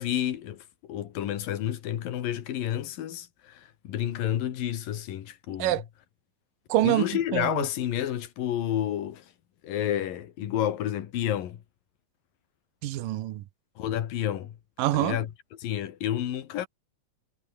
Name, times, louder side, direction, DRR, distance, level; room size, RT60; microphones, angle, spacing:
voice 1, 0.0-5.8 6.8-9.3 9.6-11.6 13.8-14.6 14.9-15.3 15.6-16.7, left 11 dB, 85° left, 3.5 m, -30 dB
voice 2, 6.7-7.0 7.3-7.7 12.8-13.4 14.8-15.2, right 15 dB, 80° right, 2.7 m, -25 dB
omnidirectional pair, 3.9 m